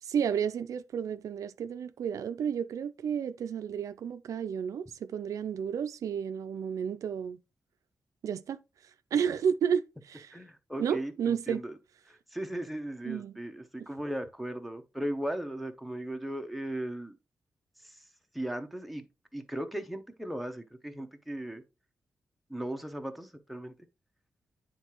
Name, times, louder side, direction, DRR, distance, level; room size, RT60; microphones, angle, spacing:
voice 1, 0.0-7.4 8.2-8.6 9.1-10.3 10.8-11.6 13.0-13.3 13.8-13.9, right 7 dB, 75° right, 0.4 m, -32 dB
voice 2, 10.3-11.7 12.3-17.1 17.8-18.0 18.3-19.0 19.3-21.6 22.5-23.7, right 1 dB, ahead, 0.7 m, -37 dB
9.1 x 3.7 x 3.0 m
cardioid pair, 95°, 6 cm